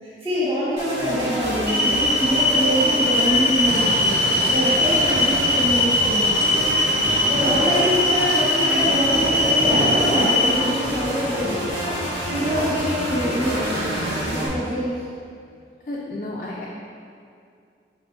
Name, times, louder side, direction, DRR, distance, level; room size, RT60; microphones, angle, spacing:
voice 1, 0.0-4.2 4.5-6.4 7.3-11.7 12.2-15.0, equal, 35° right, -11 dB, 1.2 m, -25 dB
sound 1, 0.8-14.5, equal, 85° right, 1.3 m, -28 dB
sound 2, 1.7-10.5, left 1 dB, 10° right, 0.9 m, -21 dB
Fill (with liquid), 3.5-10.3 10.9-14.2, equal, 60° right, 0.8 m, -31 dB
voice 2, 15.9-16.7, left 2 dB, 45° left, -4 dB, 0.4 m, -31 dB
4.6 x 4.3 x 2.6 m, 2.4 s
head